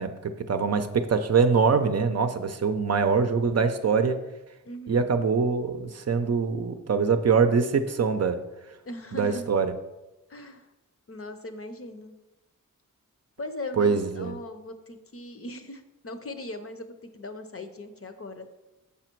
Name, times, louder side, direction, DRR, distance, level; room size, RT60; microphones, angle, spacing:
voice 1, 0.0-4.2 4.9-8.4 9.1-9.7 13.8-14.3, right 5 dB, 50° right, 8 dB, 0.6 m, -24 dB
voice 2, 4.6-5.1 8.8-9.5 10.3-10.7 11.1-12.1 13.4-18.5, left 1 dB, 45° left, 8 dB, 0.7 m, -39 dB
7.0 x 4.9 x 4.5 m, 1.0 s
wide cardioid pair, 75°, 33 cm